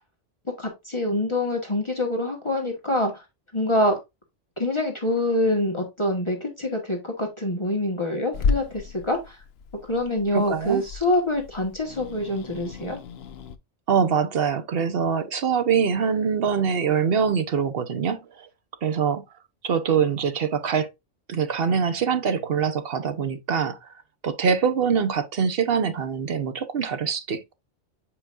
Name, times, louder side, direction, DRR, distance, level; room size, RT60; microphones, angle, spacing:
voice 1, 0.6-3.2 3.5-3.9 4.6-9.4 9.9-13.0, left 1 dB, 25° left, 1.5 m, -25 dB
Growling / Hiss, 8.3-13.6, left 5 dB, 65° left, 0.9 m, -33 dB
voice 2, 10.3-10.8 13.9-18.2 18.8-19.2 19.6-20.9 21.3-23.8 24.2-27.5, right 6 dB, 55° right, 1.1 m, -24 dB
7.6 x 5.0 x 2.4 m
omnidirectional pair, 1.2 m